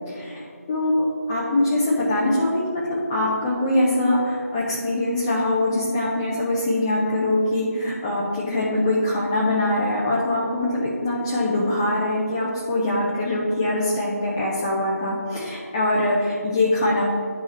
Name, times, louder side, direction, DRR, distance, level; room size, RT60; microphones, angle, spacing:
voice 1, 0.1-0.9 1.3-17.0, left 1 dB, 10° left, -6 dB, 0.5 m, -23 dB
11.0 x 4.9 x 4.2 m, 2.2 s
figure-of-eight pair, 165°, 9 cm